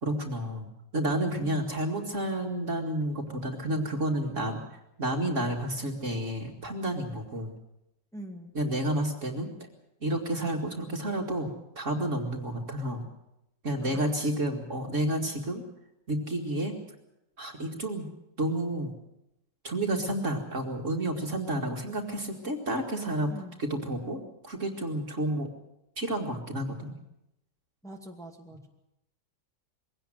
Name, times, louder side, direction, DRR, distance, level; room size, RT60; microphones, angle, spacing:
voice 1, 0.0-4.6 5.0-7.6 8.5-9.5 10.0-13.0 13.6-15.6 16.1-16.7 17.4-18.1 18.4-18.9 19.6-23.3 23.6-25.5 26.0-26.9, right 1 dB, 40° right, 2 dB, 2.4 m, -30 dB
voice 2, 8.1-8.5 13.8-14.5 23.3-23.6 27.8-28.7, right 1 dB, ahead, 1 dB, 2.2 m, -44 dB
22.0 x 17.5 x 7.7 m, 0.85 s
omnidirectional pair, 2.0 m